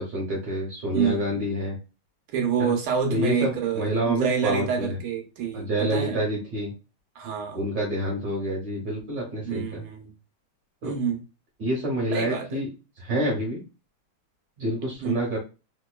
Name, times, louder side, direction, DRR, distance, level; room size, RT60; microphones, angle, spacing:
voice 1, 0.0-1.8 2.6-2.7 3.1-4.9 5.5-6.7 7.5-9.8 10.8-10.9 11.6-12.7 13.0-13.6 14.6-15.4, right 1 dB, 60° right, 1.6 m, -27 dB
voice 2, 0.9-1.4 2.3-6.2 7.2-7.6 9.4-10.1 10.8-11.2 12.1-12.6 15.0-15.2, right 7 dB, 80° right, 1.6 m, -27 dB
4.0 x 2.9 x 2.2 m
omnidirectional pair, 2.4 m